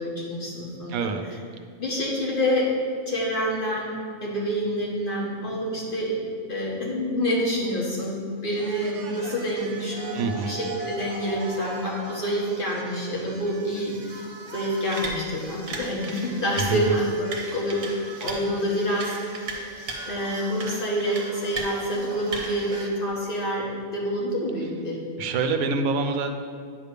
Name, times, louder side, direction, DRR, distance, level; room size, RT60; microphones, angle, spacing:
voice 1, 0.0-1.1 1.8-2.7 3.1-3.9 4.2-6.1 6.5-14.3 14.5-19.2 20.1-25.0, equal, 40° left, -4 dB, 1.6 m, -27 dB
voice 2, 0.9-1.4 10.1-10.6 16.5-17.0 25.2-26.3, right 4 dB, 80° right, 6 dB, 1.1 m, -26 dB
sound 1, 8.5-22.9, right 3 dB, 60° right, 1.3 m, -37 dB
9.4 x 3.3 x 6.6 m, 2.1 s
omnidirectional pair, 1.5 m